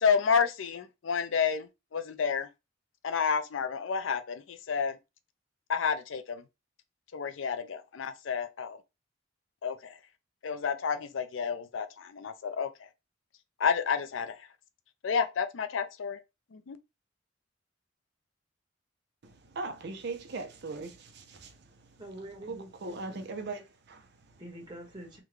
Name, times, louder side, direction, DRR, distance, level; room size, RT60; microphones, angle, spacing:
voice 1, 0.0-2.5 3.0-5.0 5.7-6.4 7.1-8.8 9.6-9.8 10.4-12.7 13.6-14.3 15.0-16.2 16.5-16.8, left 6 dB, 80° left, 0.5 m, -30 dB
voice 2, 19.2-22.0 22.5-24.4, right 3 dB, 60° right, 0.6 m, -40 dB
voice 3, 22.0-23.2 24.4-25.2, right 1 dB, 25° right, 1.3 m, -45 dB
3.7 x 2.2 x 3.1 m
head